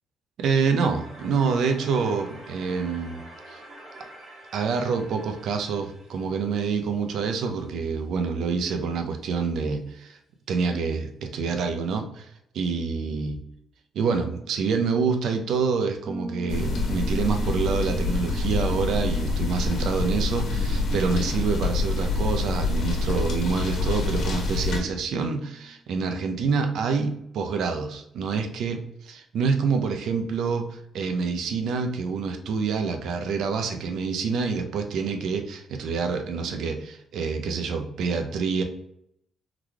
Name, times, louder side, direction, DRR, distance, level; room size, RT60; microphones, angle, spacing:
voice 1, 0.4-3.6 4.5-10.2 10.5-12.3 12.5-13.4 13.9-38.6, right 5 dB, 75° right, 6 dB, 0.5 m, -27 dB
sound 1, 0.9-7.7, right 1 dB, 45° right, 1.4 m, -47 dB
Bass guitar, 16.1-25.7, equal, 20° right, 0.7 m, -41 dB
sound 2, 16.5-24.8, left 3 dB, 70° left, 1.2 m, -26 dB
3.9 x 3.0 x 2.3 m, 0.75 s
cardioid pair, 90°, 0 cm